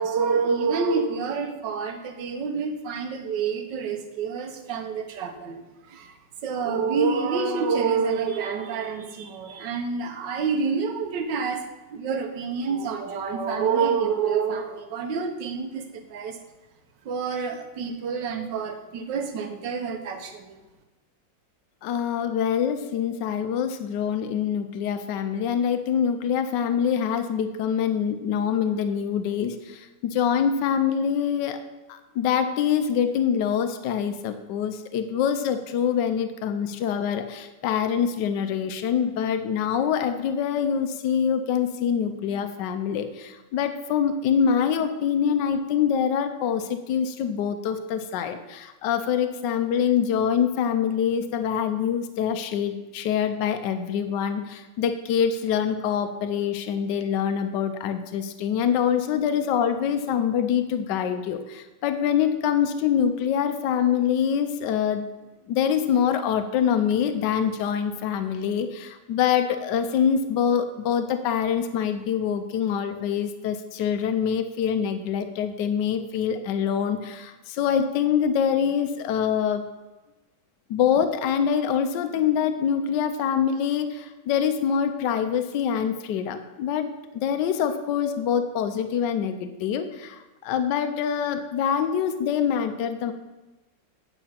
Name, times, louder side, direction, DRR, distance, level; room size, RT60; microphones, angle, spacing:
voice 1, 0.0-6.1 6.4-11.6 11.9-16.4 17.0-20.5, right 5 dB, 80° right, 6 dB, 1.7 m, -27 dB
voice 2, 21.8-31.6 31.9-65.0 65.5-79.6 80.7-86.9 87.2-93.1, left 8 dB, 75° left, 8 dB, 1.3 m, -25 dB
9.1 x 6.7 x 5.8 m, 1.1 s
omnidirectional pair, 1.9 m